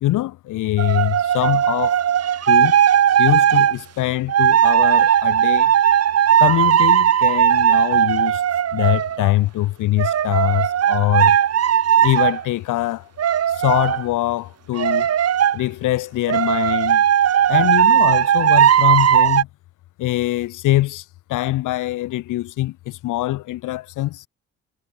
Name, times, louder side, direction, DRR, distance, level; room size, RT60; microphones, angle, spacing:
voice 1, 0.0-2.0 2.5-2.8 3.2-5.7 6.4-8.4 8.7-11.4 12.0-13.1 13.5-15.1 15.5-17.0 17.5-19.5 20.0-24.3, left 16 dB, 85° left, 1.7 m, -23 dB
sound 1, 0.8-3.8 4.3-9.3 10.0-12.4 13.2-14.0 14.8-15.6 16.3-19.4, right 9 dB, 55° right, 1.6 m, -17 dB
cardioid pair, 90°, 30 cm